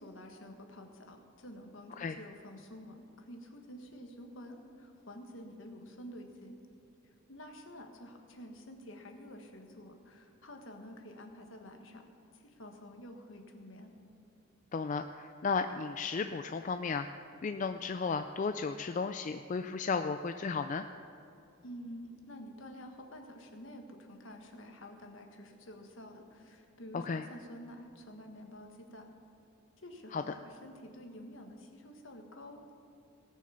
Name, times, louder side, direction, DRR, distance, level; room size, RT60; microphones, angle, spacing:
voice 1, 0.0-6.6 7.0-12.1 12.3-13.9 21.6-29.1 29.8-32.6, equal, 65° left, 4 dB, 1.5 m, -49 dB
voice 2, 14.7-20.9 26.9-27.2 30.1-30.2, left 4 dB, 35° left, 8 dB, 0.3 m, -34 dB
18.0 x 6.4 x 6.9 m, 2.8 s
head